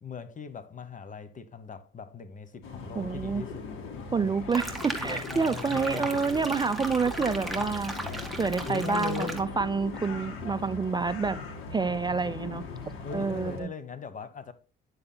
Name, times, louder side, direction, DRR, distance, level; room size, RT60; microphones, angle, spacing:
voice 1, 0.0-3.7 4.1-4.5 5.3-6.2 8.7-9.4 13.0-14.5, left 6 dB, 40° left, 1.1 m, -39 dB
sound 1, 2.6-13.6, left 5 dB, 85° left, 2.0 m, -40 dB
voice 2, 3.0-3.4 4.1-7.9 8.4-11.4 11.7-12.6 13.1-13.7, right 4 dB, 20° right, 0.4 m, -28 dB
sound 2, 4.5-9.4, right 1 dB, ahead, 2.0 m, -37 dB
9.7 x 7.5 x 2.2 m
cardioid pair, 90°, 20 cm